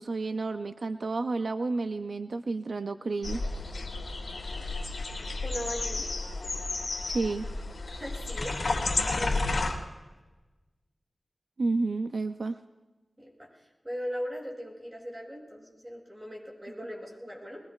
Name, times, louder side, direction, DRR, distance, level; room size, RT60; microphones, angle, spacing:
voice 1, 0.0-3.4 7.1-7.5 11.6-12.6, right 3 dB, 75° right, 8 dB, 0.5 m, -30 dB
sound 1, 3.2-9.7, left 2 dB, 90° left, 2.3 m, -32 dB
voice 2, 5.4-6.1 7.9-8.6 9.1-9.6 13.2-17.6, equal, 20° right, -2 dB, 6.9 m, -39 dB
23.0 x 21.0 x 2.4 m, 1.2 s
wide cardioid pair, 70°, 0 cm